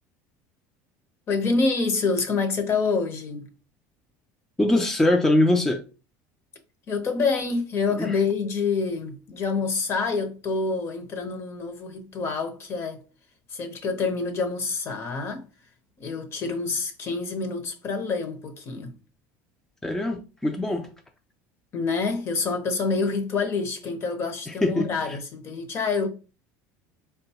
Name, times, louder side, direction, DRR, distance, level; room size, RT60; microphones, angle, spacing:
voice 1, 1.3-3.5 6.9-13.0 13.5-15.4 16.0-18.9 21.7-26.1, left 4 dB, 40° left, 0.8 m, -27 dB
voice 2, 4.6-5.8 8.0-8.1 19.8-20.9 24.6-24.9, left 1 dB, 5° left, 0.4 m, -22 dB
4.0 x 2.2 x 2.8 m
supercardioid pair, 115°, 7 cm